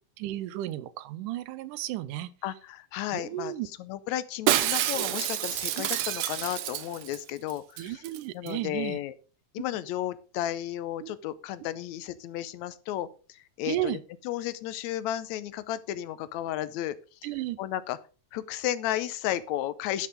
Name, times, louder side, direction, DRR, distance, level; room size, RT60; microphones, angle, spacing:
voice 1, 0.2-2.3 3.1-3.7 5.8-5.9 7.8-9.0 11.0-11.1 13.7-14.0 17.2-17.6, right 14 dB, 90° right, 2.3 m, -33 dB
voice 2, 2.4-3.5 3.8-8.0 8.3-9.2 9.5-14.0 14.3-17.0 17.2-17.3 17.6-18.0 18.3-20.1, left 12 dB, 75° left, 1.9 m, -33 dB
Shatter, 4.5-7.2 7.5-7.6 7.8-8.2 8.5-8.6, right 12 dB, 70° right, 1.7 m, -28 dB
11.0 x 6.6 x 5.0 m
omnidirectional pair, 3.6 m